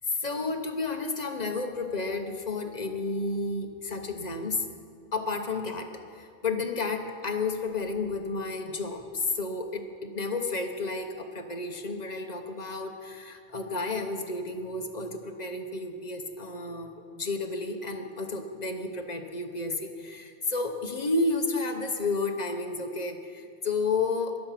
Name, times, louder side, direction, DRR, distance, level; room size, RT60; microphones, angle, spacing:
voice 1, 0.1-4.6 5.1-5.9 6.2-24.4, left 3 dB, 40° left, 4 dB, 1.1 m, -31 dB
21.5 x 7.2 x 5.8 m, 2.2 s
omnidirectional pair, 1.1 m